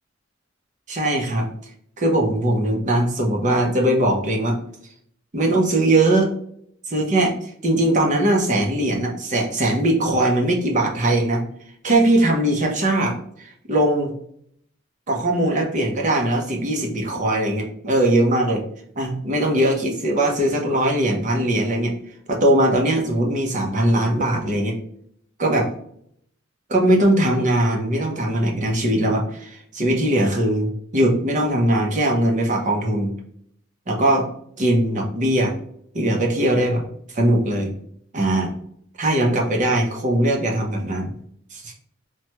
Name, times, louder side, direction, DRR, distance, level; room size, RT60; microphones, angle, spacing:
voice 1, 0.9-1.5 2.0-4.6 5.3-6.3 6.9-7.3 7.6-11.4 11.8-14.1 15.1-18.6 19.0-21.9 22.3-24.8 25.4-25.7 26.7-33.1 33.9-34.3 34.6-35.5 35.9-36.8 37.1-37.7 38.1-38.5 39.0-41.1 41.5-41.7, right 1 dB, 40° right, 1 dB, 0.7 m, -20 dB
3.1 x 2.2 x 2.9 m, 0.67 s
head